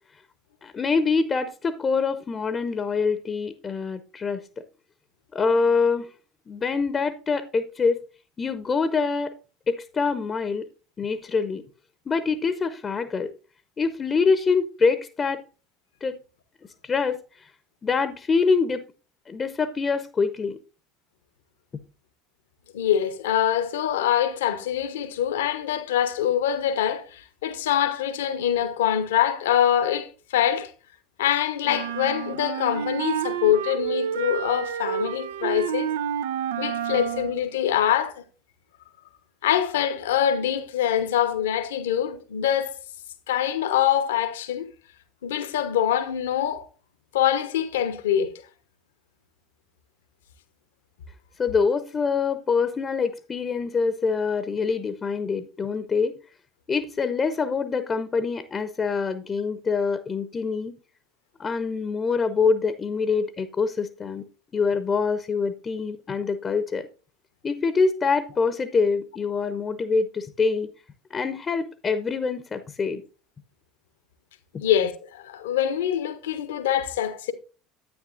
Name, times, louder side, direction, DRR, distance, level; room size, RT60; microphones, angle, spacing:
voice 1, 0.6-4.4 5.3-6.1 6.5-8.0 8.4-9.3 9.7-10.7 11.0-11.6 12.1-13.3 13.8-15.4 16.0-16.2 16.8-17.5 17.8-18.8 19.3-20.6 51.4-56.2 56.7-60.7 61.4-64.2 64.5-66.9 67.4-70.7 71.1-73.0, left 5 dB, 30° left, 0.8 m, -25 dB
voice 2, 22.7-30.7 31.2-35.9 36.6-38.2 39.4-42.7 43.3-44.7 45.2-46.7 47.1-48.3 74.6-77.3, left 10 dB, 70° left, 1.0 m, -24 dB
sound 1, 31.7-37.4, right 9 dB, 70° right, 0.5 m, -29 dB
10.5 x 9.5 x 2.6 m
figure-of-eight pair, 65°, 0 cm